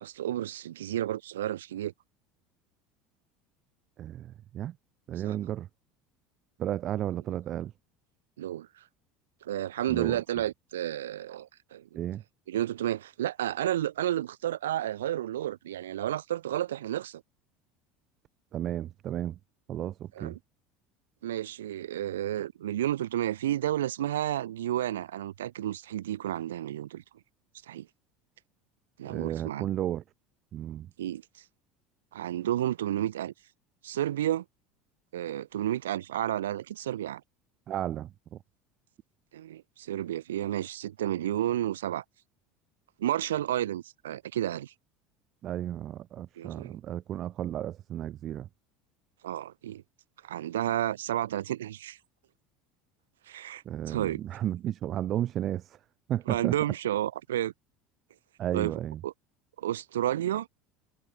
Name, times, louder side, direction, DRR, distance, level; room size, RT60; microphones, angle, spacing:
voice 1, 0.0-1.9 5.2-5.3 8.4-8.7 9.4-12.0 12.5-17.2 20.2-20.4 21.2-27.0 27.7-27.9 29.0-29.7 31.0-31.2 32.1-33.3 33.8-34.4 35.1-37.2 39.3-42.0 43.0-44.7 46.4-46.8 49.2-49.8 50.2-52.0 53.3-54.2 56.3-57.5 58.5-58.7 59.0-59.1 59.6-60.5, right 12 dB, 80° right, 0.9 m, -31 dB
voice 2, 4.0-4.8 5.1-5.7 6.6-7.7 9.9-10.2 11.9-12.2 18.5-19.4 19.7-20.4 29.0-30.0 30.5-30.9 37.7-38.4 45.4-48.5 53.7-55.8 56.1-56.6 58.4-59.0, right 12 dB, 45° right, 0.7 m, -33 dB
hypercardioid pair, 75°, 0 cm